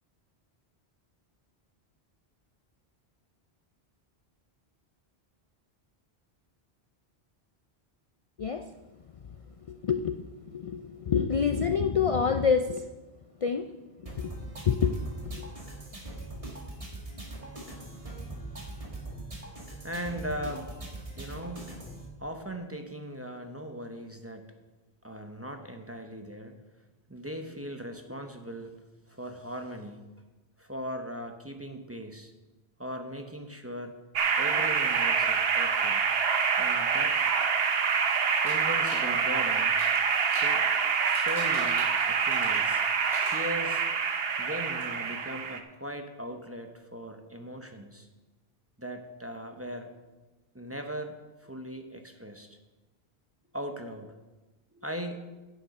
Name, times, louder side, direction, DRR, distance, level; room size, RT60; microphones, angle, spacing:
voice 1, 8.4-8.7 9.7-12.9 13.4-13.7 14.1-14.4 14.7-15.5, left 6 dB, 60° left, 8 dB, 0.3 m, -27 dB
sound 1, 14.1-22.1, right 2 dB, 30° right, 1.9 m, -41 dB
voice 2, 19.8-20.7 21.2-21.7 22.2-24.5 25.0-26.6 27.1-28.8 29.1-30.0 30.6-32.3 32.8-33.9 34.4-36.1 36.6-37.2 38.4-39.8 40.2-40.6 41.0-42.8 43.3-43.8 44.4-48.1 48.8-49.9 50.5-51.1 51.4-52.6 53.5-54.1 54.7-55.2, equal, 15° right, 5 dB, 0.7 m, -39 dB
sound 2, 34.2-45.6, right 6 dB, 65° right, 1.0 m, -26 dB
sound 3, 38.4-39.1 39.6-40.5 41.0-42.8 43.1-44.0 44.4-44.5 44.8-44.9, right 2 dB, 85° right, 2.9 m, -43 dB
9.8 x 7.8 x 5.3 m, 1.2 s
omnidirectional pair, 1.1 m